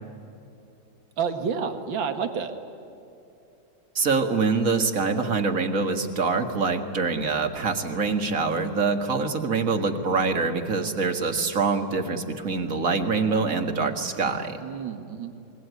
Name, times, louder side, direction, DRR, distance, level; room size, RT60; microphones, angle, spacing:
voice 1, 1.2-2.5 14.6-15.3, right 6 dB, 80° right, 7 dB, 2.4 m, -29 dB
voice 2, 4.0-14.6, right 4 dB, 45° right, 6 dB, 2.2 m, -25 dB
26.0 x 22.0 x 9.6 m, 2.9 s
omnidirectional pair, 2.1 m